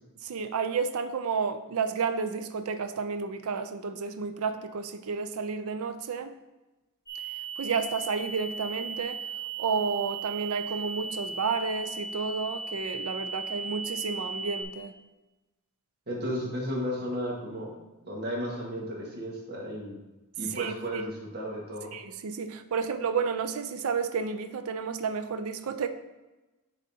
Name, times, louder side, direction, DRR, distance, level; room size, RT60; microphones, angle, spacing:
voice 1, 0.2-6.3 7.6-9.2 9.6-14.9 20.5-21.0 21.9-25.9, right 5 dB, 70° right, 9 dB, 0.5 m, -31 dB
sound 1, 7.1-14.6, right 4 dB, 10° left, 0.9 m, -37 dB
voice 2, 16.1-17.7 18.0-20.0 20.4-21.9, equal, 50° right, -3 dB, 1.6 m, -34 dB
10.5 x 4.0 x 2.8 m, 1.1 s
head